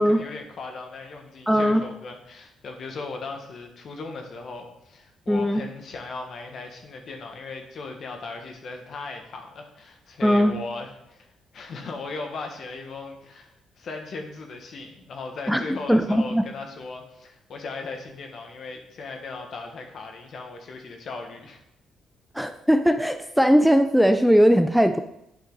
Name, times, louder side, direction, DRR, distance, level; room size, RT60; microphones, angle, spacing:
voice 1, 0.0-11.3 11.5-21.6, left 3 dB, 60° left, 4 dB, 1.5 m, -37 dB
voice 2, 1.5-1.8 5.3-5.6 10.2-10.5 15.5-16.4 22.3-25.0, equal, ahead, 8 dB, 0.4 m, -19 dB
8.7 x 5.7 x 4.0 m, 0.82 s
cardioid pair, 90°, 0 cm